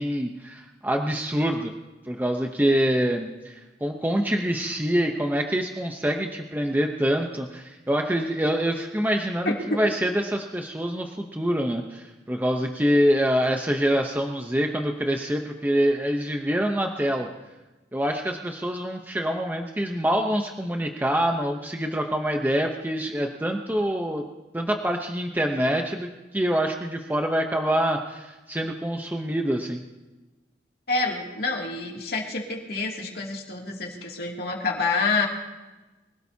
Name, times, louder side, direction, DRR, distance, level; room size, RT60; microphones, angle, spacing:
voice 1, 0.0-1.7 2.1-17.3 17.9-24.2 24.5-29.8, equal, 10° right, 3 dB, 0.8 m, -25 dB
voice 2, 30.9-35.3, left 3 dB, 60° left, -1 dB, 2.7 m, -27 dB
24.5 x 17.0 x 2.8 m, 1.1 s
head